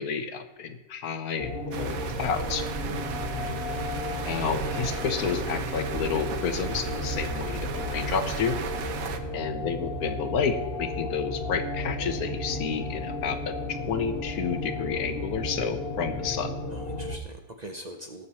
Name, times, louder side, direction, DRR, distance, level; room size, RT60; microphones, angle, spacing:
voice 1, 0.0-2.6 4.2-8.6 9.3-13.5 13.9-16.5, left 6 dB, 75° left, 9 dB, 1.4 m, -30 dB
sound 1, 1.4-17.2, left 2 dB, 40° left, 1.3 m, -33 dB
sound 2, 1.7-9.2, right 7 dB, 70° right, 1.2 m, -35 dB
voice 2, 2.8-3.3 9.0-9.3 16.7-18.3, right 1 dB, 35° right, 4 dB, 0.7 m, -42 dB
18.5 x 6.7 x 4.2 m, 1.0 s
omnidirectional pair, 1.6 m